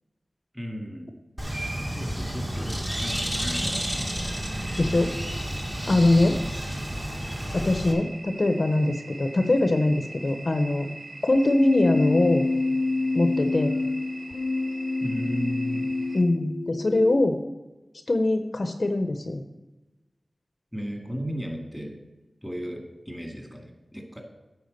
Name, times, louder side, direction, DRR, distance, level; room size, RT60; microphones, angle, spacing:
voice 1, 0.5-1.1 1.9-4.3 15.0-15.9 20.7-22.0 22.4-24.2, equal, 5° right, 2 dB, 2.1 m, -35 dB
Bird, 1.4-7.9, equal, 20° right, 1.6 m, -31 dB
sound 1, 3.9-16.2, right 2 dB, 90° right, 1.0 m, -42 dB
voice 2, 4.8-5.1 5.9-6.4 7.5-10.9 11.2-12.5 13.1-13.7 16.1-17.4 18.1-19.4, left 2 dB, 55° left, 7 dB, 0.7 m, -22 dB
Keyboard (musical), 11.3-17.3, left 3 dB, 85° left, 0.3 m, -27 dB
9.4 x 4.6 x 6.6 m, 1.1 s
wide cardioid pair, 55°, 0 cm